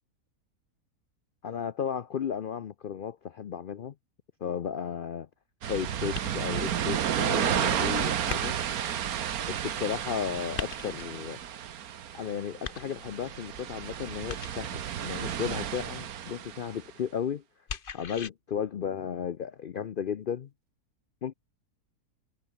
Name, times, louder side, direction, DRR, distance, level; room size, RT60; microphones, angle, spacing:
voice 1, 1.4-3.9 4.4-5.3 5.7-8.6 9.5-11.4 12.1-17.4 17.9-20.5 21.2-21.3, left 8 dB, 80° left, 0.4 m, -34 dB
sound 1, 5.6-16.8, right 9 dB, 65° right, 1.5 m, -32 dB
sound 2, 6.1-6.7 8.3-8.9 10.6-11.2 12.6-13.3 14.3-14.8 17.7-18.3, left 6 dB, 40° left, 1.1 m, -39 dB
omnidirectional pair, 1.7 m